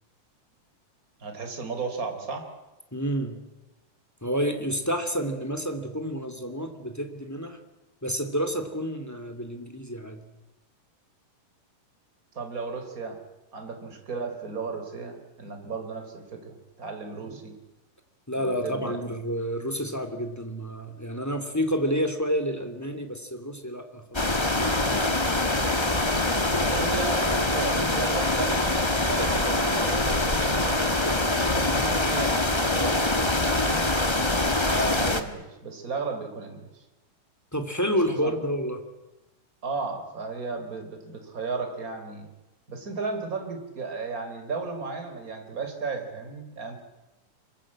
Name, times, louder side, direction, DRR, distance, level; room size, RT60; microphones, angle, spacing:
voice 1, 1.2-2.5 12.3-13.2 13.5-17.6 18.3-19.0 26.7-33.9 34.7-36.8 38.1-38.3 39.6-42.3 42.7-46.8, right 4 dB, 25° right, 5 dB, 4.0 m, -34 dB
voice 2, 2.9-3.4 4.2-7.6 8.0-10.2 18.3-24.7 37.5-38.8, equal, 5° left, 7 dB, 2.1 m, -29 dB
sound 1, 24.1-35.2, left 2 dB, 45° left, 0.3 m, -24 dB
26.5 x 22.0 x 8.8 m, 1.0 s
omnidirectional pair, 3.8 m